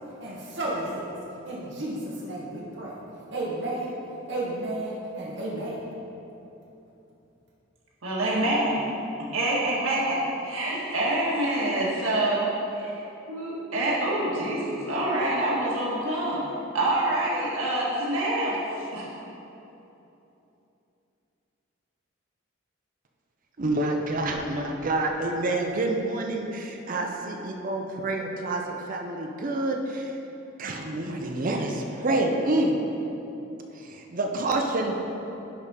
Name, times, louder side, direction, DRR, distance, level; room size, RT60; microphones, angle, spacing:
voice 1, 0.2-1.1 1.4-3.0 3.3-4.0 4.3-5.8, right 1 dB, 60° right, -5 dB, 1.1 m, -32 dB
voice 2, 8.0-8.8 9.3-12.5 12.8-13.0 13.3-16.4 16.7-18.6 18.9-19.1, right 1 dB, 90° right, -5 dB, 1.6 m, -26 dB
voice 3, 23.6-30.1 30.6-32.8 33.7-35.0, right 2 dB, 40° right, 2 dB, 0.6 m, -28 dB
10.5 x 3.7 x 4.2 m, 3.0 s
head